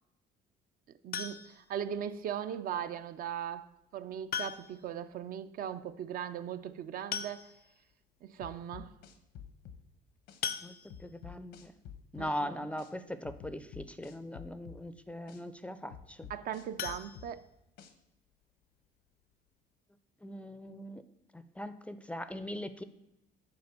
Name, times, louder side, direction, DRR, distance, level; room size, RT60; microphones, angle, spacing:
voice 1, 1.0-7.5 8.2-8.9 12.2-12.5 16.3-17.4, right 9 dB, 60° right, 0.4 m, -39 dB
sound 1, 1.1-1.8 3.2-3.3 4.3-4.9 5.2-5.3 5.6-5.7 6.7-6.8 7.1-7.8 8.4-8.5 8.8-9.0 10.4-11.3 16.7-17.9 18.3-18.4 18.8-18.9 19.3-19.4, left 8 dB, 65° left, 0.5 m, -39 dB
sound 2, 8.4-9.8 10.3-10.4 10.9-12.3 12.8-12.9 13.2-14.8 15.3-15.4 15.9-17.3 17.8-17.9, left 8 dB, 85° left, 0.8 m, -49 dB
voice 2, 11.0-11.7 12.1-16.3 20.2-21.0 21.3-22.8, left 1 dB, 5° left, 0.4 m, -40 dB
6.9 x 4.2 x 6.6 m
cardioid pair, 110°, 17 cm